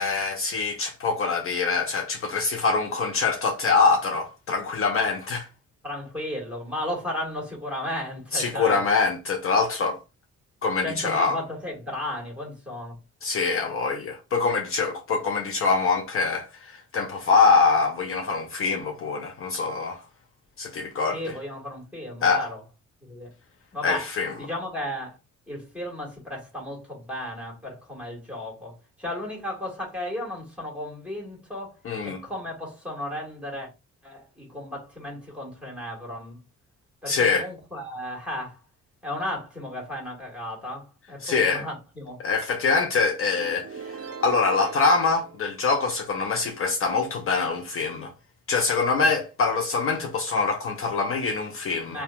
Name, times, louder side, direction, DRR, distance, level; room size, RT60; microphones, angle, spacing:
voice 1, 0.0-5.5 8.3-10.0 10.6-11.4 13.2-20.0 20.6-21.2 22.2-22.5 23.8-24.3 31.8-32.2 37.1-37.5 41.2-41.6 42.2-48.1 48.5-52.0, left 4 dB, 45° left, 0.5 m, -24 dB
voice 2, 5.8-8.8 10.8-12.9 21.1-22.6 23.0-23.3 23.7-24.1 24.4-25.2 25.5-31.7 32.0-33.7 34.0-36.4 37.0-38.6 39.0-42.2 49.0-49.1 51.9-52.0, left 1 dB, 5° right, 1.4 m, -34 dB
sound 1, 43.3-46.2, right 5 dB, 55° right, 0.6 m, -41 dB
2.8 x 2.2 x 2.3 m
cardioid pair, 90°, 30 cm